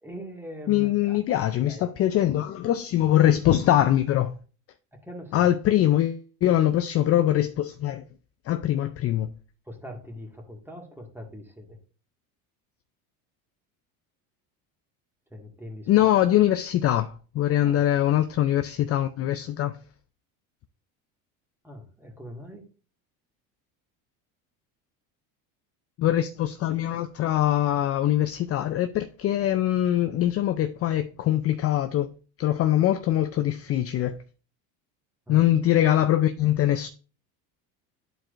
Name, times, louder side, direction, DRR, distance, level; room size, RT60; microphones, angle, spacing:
voice 1, 0.0-1.9 4.9-5.6 9.7-11.8 15.3-16.1 17.6-17.8 21.6-22.6 35.3-35.5, equal, 5° right, 1.9 m, -42 dB
voice 2, 0.7-4.3 5.3-8.0 8.4-9.3 15.9-19.8 26.0-32.1 32.4-34.2 35.3-36.9, left 12 dB, 35° left, 0.4 m, -23 dB
11.0 x 4.5 x 2.5 m
supercardioid pair, 115°, 41 cm